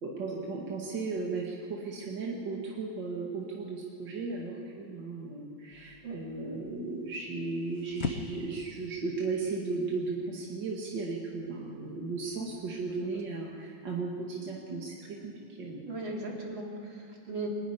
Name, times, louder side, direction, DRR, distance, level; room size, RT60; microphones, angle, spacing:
voice 1, 0.0-15.3 15.6-15.8, right 3 dB, 70° right, -3 dB, 2.8 m, -35 dB
sound 1, 5.7-13.3, left 5 dB, 40° left, 1.1 m, -44 dB
voice 2, 15.9-17.5, right 3 dB, 85° right, -1 dB, 3.7 m, -37 dB
23.5 x 11.5 x 9.9 m, 2.4 s
omnidirectional pair, 2.0 m